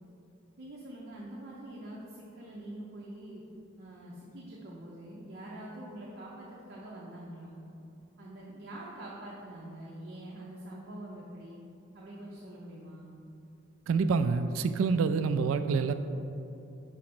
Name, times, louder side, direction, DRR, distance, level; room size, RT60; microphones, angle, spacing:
voice 1, 0.6-3.4 3.8-7.6 8.2-11.6 11.9-13.2, right 1 dB, 55° right, -5 dB, 0.7 m, -45 dB
voice 2, 13.9-15.9, right 5 dB, 80° right, 10 dB, 0.3 m, -27 dB
4.9 x 4.2 x 5.9 m, 2.7 s
head